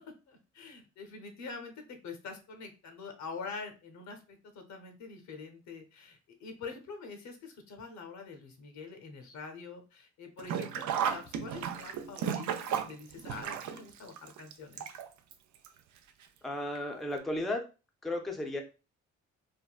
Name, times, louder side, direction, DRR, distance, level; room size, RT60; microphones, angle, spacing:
voice 1, 0.0-14.8, left 4 dB, 70° left, 6 dB, 0.8 m, -45 dB
Sink (filling or washing), 10.4-15.3 15.6-15.7 16.7-16.8 17.2-17.3, right 8 dB, 75° right, 0.5 m, -34 dB
voice 2, 16.4-17.6 18.0-18.6, left 1 dB, ahead, 2 dB, 0.5 m, -34 dB
3.5 x 2.1 x 2.3 m, 0.31 s
cardioid pair, 90°, 30 cm